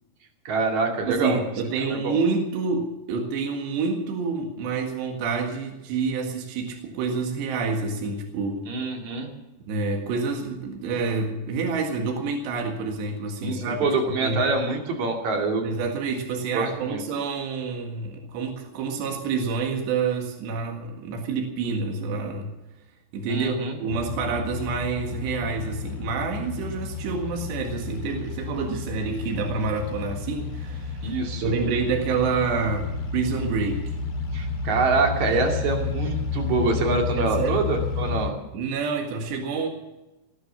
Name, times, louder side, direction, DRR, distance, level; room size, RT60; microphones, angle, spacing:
voice 1, 0.5-1.4 1.9-2.2 8.7-9.3 13.4-15.7 16.5-17.0 23.3-23.8 31.0-31.6 34.3-38.3, right 3 dB, 45° right, 2 dB, 3.4 m, -25 dB
voice 2, 1.0-8.7 9.6-14.4 15.6-22.5 23.1-31.1 31.4-33.8 37.1-37.6 38.5-39.7, right 4 dB, 80° right, 2 dB, 4.0 m, -28 dB
sound 1, 23.9-38.3, left 5 dB, 45° left, 2.0 m, -31 dB
18.5 x 10.5 x 7.1 m, 0.99 s
omnidirectional pair, 5.0 m